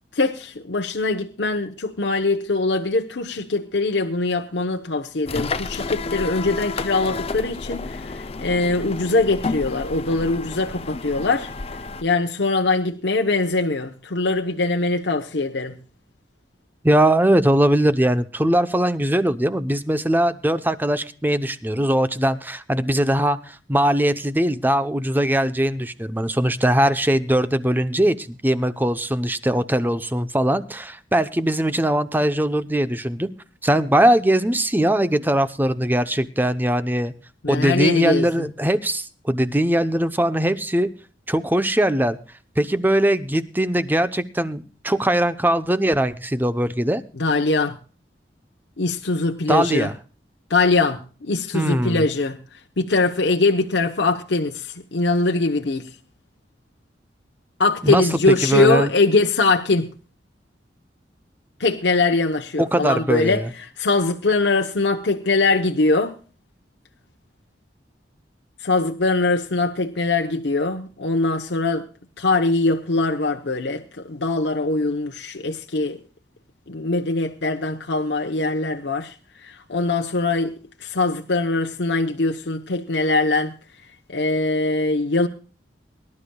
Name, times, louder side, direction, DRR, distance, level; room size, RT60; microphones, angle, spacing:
voice 1, 0.1-11.5 12.0-15.7 37.4-38.3 47.2-47.7 48.8-49.9 50.5-52.4 52.8-55.9 57.6-59.9 61.6-63.4 63.8-66.2 68.6-71.9 72.2-76.0 76.7-79.1 79.4-83.5 84.1-85.3, left 3 dB, 70° left, 1.0 m, -22 dB
sound 1, 5.3-12.0, left 3 dB, 35° left, 0.6 m, -31 dB
voice 2, 16.8-33.3 33.6-37.1 37.5-40.9 41.3-42.2 42.6-47.0 49.5-49.9 51.5-52.1 57.8-58.0 58.4-58.9 62.6-63.5, right 1 dB, 10° right, 0.7 m, -21 dB
23.5 x 12.0 x 2.3 m
head